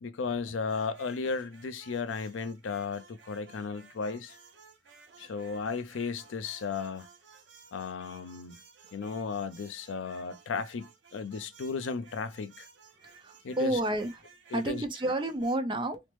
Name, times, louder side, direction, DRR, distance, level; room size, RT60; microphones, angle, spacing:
voice 1, 0.0-4.4 5.2-7.1 7.7-8.6 8.9-12.7 13.4-13.8 14.5-14.8, left 5 dB, 85° left, 0.4 m, -35 dB
sound 1, 0.6-15.6, right 5 dB, 70° right, 0.7 m, -56 dB
voice 2, 13.0-14.2 14.5-16.0, right 1 dB, 25° right, 0.5 m, -31 dB
3.2 x 2.0 x 3.0 m
head